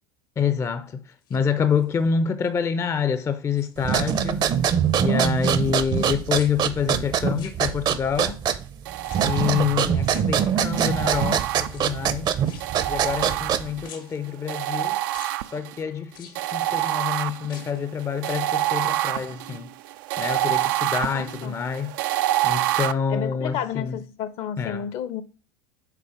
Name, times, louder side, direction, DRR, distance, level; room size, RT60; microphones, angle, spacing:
voice 1, 0.4-4.6 5.0-8.4 9.2-12.3 12.9-15.0 15.5-19.7 20.2-22.0 22.4-24.0 24.6-24.9, left 6 dB, 25° left, 0.5 m, -27 dB
sound 1, 1.1-2.1 2.6-3.0 3.3-4.3 4.5-6.1 6.3-8.1 9.0-9.6 10.0-10.9 11.6-13.5 13.8-14.8 15.1-15.4 16.1-16.9 17.4-17.9 18.2-18.3, left 7 dB, 75° left, 1.4 m, -49 dB
sound 2, 3.8-13.9, right 8 dB, 40° right, 0.7 m, -24 dB
sound 3, 8.9-10.1 10.7-12.1 12.6-13.9 14.5-15.8 16.3-22.9, right 15 dB, 75° right, 0.4 m, -27 dB
voice 2, 21.0-21.5 23.1-25.2, left 9 dB, 55° left, 0.8 m, -31 dB
6.8 x 4.0 x 4.8 m
hypercardioid pair, 95°, 11 cm